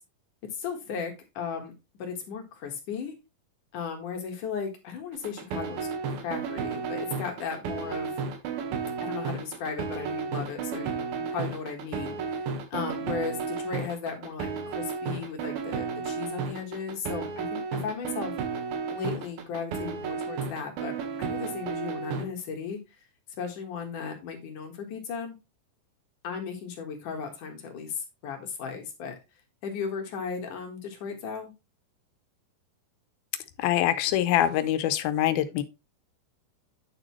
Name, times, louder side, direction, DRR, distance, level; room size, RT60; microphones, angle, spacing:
voice 1, 0.5-3.1 3.7-8.2 9.0-11.0 11.3-18.3 18.9-22.8 23.4-25.4 26.2-29.1 29.6-31.5, left 6 dB, 65° left, 2.9 m, -36 dB
sound 1, 5.1-22.2, right 5 dB, 85° right, 3.2 m, -33 dB
voice 2, 33.6-35.6, left 12 dB, 85° left, 2.7 m, -24 dB
9.4 x 6.6 x 3.1 m
omnidirectional pair, 4.2 m